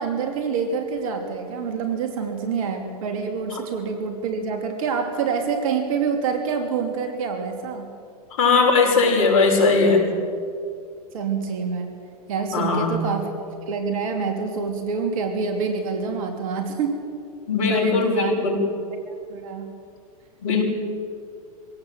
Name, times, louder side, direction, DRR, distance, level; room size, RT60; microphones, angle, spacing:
voice 1, 0.0-7.9 11.1-11.9 12.3-17.0 17.7-18.4 19.1-19.7, right 5 dB, 60° right, 4 dB, 3.1 m, -26 dB
voice 2, 8.4-10.0 12.5-13.0 17.5-18.6 20.4-20.6, left 4 dB, 65° left, 2 dB, 6.0 m, -19 dB
24.0 x 17.5 x 7.8 m, 2.4 s
hypercardioid pair, 115°, 19 cm